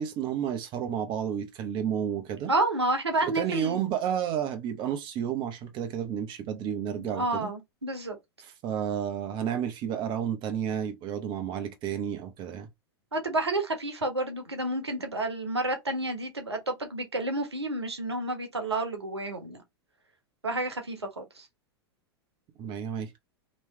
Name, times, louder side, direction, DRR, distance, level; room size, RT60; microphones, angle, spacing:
voice 1, 0.0-2.5 3.2-7.5 8.4-12.7 22.6-23.1, right 9 dB, 35° right, 0.9 m, -31 dB
voice 2, 2.5-3.9 7.0-8.2 13.1-19.6 20.4-21.5, right 2 dB, 85° right, 1.1 m, -30 dB
3.1 x 3.1 x 3.2 m
figure-of-eight pair, 95°, 14 cm